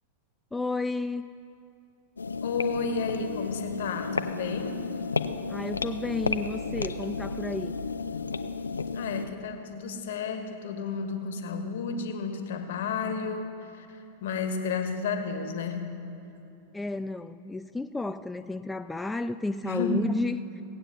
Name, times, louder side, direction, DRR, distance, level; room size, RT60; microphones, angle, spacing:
voice 1, 0.5-1.3 5.5-7.7 16.7-20.6, left 2 dB, 10° left, 9 dB, 0.3 m, -32 dB
sound 1, 2.2-9.3, left 4 dB, 75° left, 0.5 m, -32 dB
voice 2, 2.4-4.8 8.9-15.9 19.6-20.1, left 4 dB, 55° left, 7 dB, 1.4 m, -32 dB
17.5 x 8.9 x 6.8 m, 2.9 s
figure-of-eight pair, 90°, 0 cm